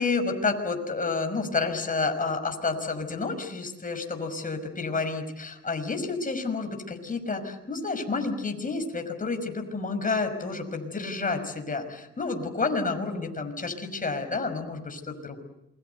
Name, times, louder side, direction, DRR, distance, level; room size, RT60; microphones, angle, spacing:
voice 1, 0.0-15.4, left 4 dB, 25° left, 6 dB, 5.8 m, -30 dB
27.5 x 23.5 x 8.1 m, 0.87 s
cardioid pair, 90°, 30 cm